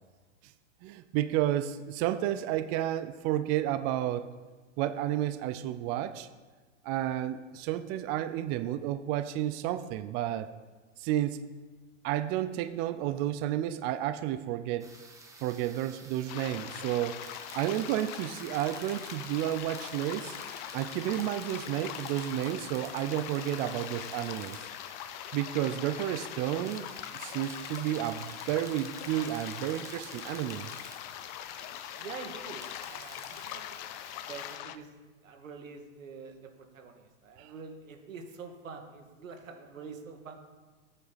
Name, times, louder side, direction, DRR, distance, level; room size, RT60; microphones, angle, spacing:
voice 1, 0.8-4.3 4.8-6.3 6.8-10.5 11.0-11.4 12.0-14.9 15.4-17.2 17.5-20.4 20.7-24.7 25.3-26.9 27.1-30.7 37.4-37.5, right 12 dB, 25° right, 10 dB, 0.4 m, -31 dB
sound 1, 14.8-34.6, right 3 dB, 10° right, 1.6 m, -50 dB
sound 2, 16.3-34.8, left 13 dB, 40° left, 0.5 m, -42 dB
voice 2, 32.0-33.8 34.3-35.0 35.2-36.3 36.7-40.4, right 5 dB, 90° right, 4 dB, 2.1 m, -45 dB
13.5 x 8.8 x 4.1 m, 1.4 s
hypercardioid pair, 130°, 38 cm